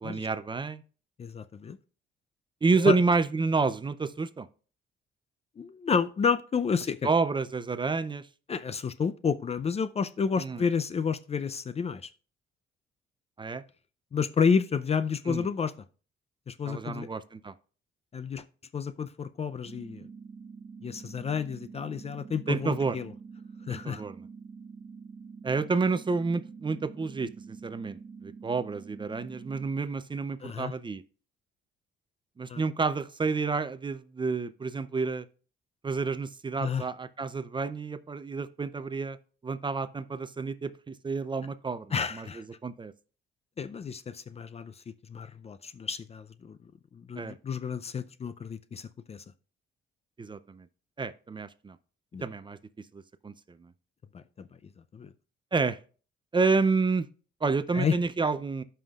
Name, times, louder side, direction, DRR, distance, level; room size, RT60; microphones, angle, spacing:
voice 1, 0.0-0.8 2.6-4.5 7.0-8.3 10.4-10.6 13.4-13.6 15.3-15.5 16.6-17.5 22.5-23.0 23.7-24.3 25.4-31.0 32.4-35.2 35.8-39.2 39.4-41.9 42.1-42.9 47.2-47.4 50.2-50.7 51.0-51.8 52.2-52.6 52.9-53.7 55.5-55.8 56.3-57.1 57.4-58.6, right 4 dB, 25° right, 0.5 m, -29 dB
voice 2, 1.2-1.8 2.7-3.0 5.6-7.1 8.5-12.1 14.1-15.7 16.5-17.1 18.1-18.4 18.7-20.1 20.8-23.1 23.7-24.0 30.4-30.7 32.5-32.6 36.6-36.9 41.9-42.5 43.6-46.6 46.9-49.2 52.1-52.3 54.1-54.5 54.9-55.1 57.7-57.9, left 6 dB, 30° left, 0.4 m, -30 dB
sound 1, 19.7-29.7, right 5 dB, 45° right, 0.9 m, -46 dB
15.5 x 5.7 x 2.4 m
cardioid pair, 90°, 20 cm